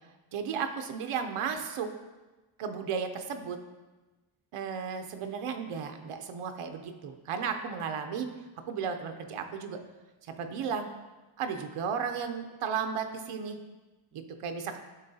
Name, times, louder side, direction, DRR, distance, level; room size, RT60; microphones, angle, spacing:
voice 1, 0.3-1.9 2.6-3.6 4.5-8.3 8.7-9.8 10.4-10.9 11.4-13.6 14.1-14.8, right 6 dB, 85° right, 6 dB, 0.7 m, -34 dB
11.5 x 3.8 x 2.7 m, 1.2 s
wide cardioid pair, 165°, 50 cm